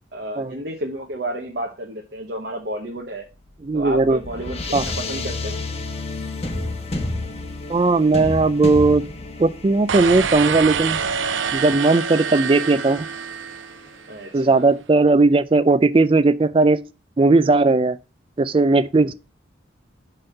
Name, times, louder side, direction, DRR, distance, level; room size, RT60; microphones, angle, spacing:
voice 1, 0.1-3.3 3.7-5.6 14.1-14.7, right 1 dB, 55° right, 1.0 m, -31 dB
sound 1, 3.3-14.1, left 2 dB, 30° left, 1.1 m, -32 dB
voice 2, 3.6-4.2 4.7-4.8 7.7-9.0 9.4-11.0 11.5-13.1 14.3-16.8 17.2-18.0 18.4-19.1, right 3 dB, 30° right, 0.3 m, -17 dB
sound 2, 9.9-14.1, right 7 dB, 85° right, 0.6 m, -26 dB
5.5 x 5.4 x 5.6 m
head